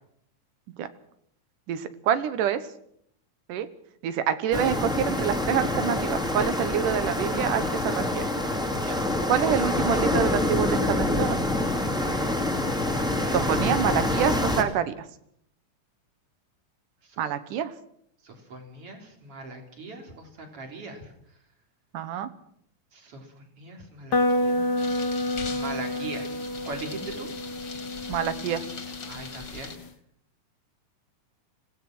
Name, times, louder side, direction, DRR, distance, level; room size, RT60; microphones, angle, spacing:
voice 1, 1.7-2.6 3.5-3.7 4.0-8.2 9.3-11.4 13.3-14.9 17.2-17.7 21.9-22.3 28.1-28.6, right 9 dB, 85° right, 12 dB, 2.8 m, -26 dB
sound 1, 4.5-14.6, left 1 dB, ahead, 2.0 m, -26 dB
voice 2, 8.8-9.1 13.2-13.6 17.0-17.2 18.2-21.1 22.9-24.9 25.5-26.4 26.6-27.3 29.1-29.7, right 3 dB, 45° right, 3 dB, 4.4 m, -40 dB
sound 2, 24.1-29.9, left 1 dB, 70° left, 1.0 m, -29 dB
sound 3, 24.8-29.8, left 4 dB, 35° left, 2.5 m, -41 dB
25.5 x 17.5 x 6.1 m, 0.71 s
omnidirectional pair, 3.6 m